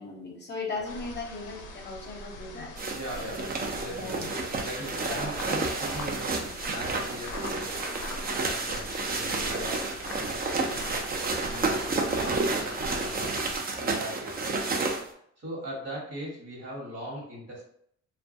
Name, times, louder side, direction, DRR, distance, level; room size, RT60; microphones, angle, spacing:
voice 1, 0.0-2.7 3.9-4.3 5.0-5.3, left 3 dB, 35° left, 0 dB, 0.6 m, -37 dB
sound 1, 0.8-13.6, left 2 dB, 85° left, 0.5 m, -42 dB
sound 2, 2.8-15.1, right 3 dB, 30° right, 0.4 m, -30 dB
voice 2, 2.9-7.8 8.3-9.9 10.2-11.1 11.4-13.5 13.8-14.5 14.9-17.6, right 1 dB, 55° right, -2 dB, 1.2 m, -40 dB
2.2 x 2.2 x 2.6 m, 0.67 s
cardioid pair, 90°, 30 cm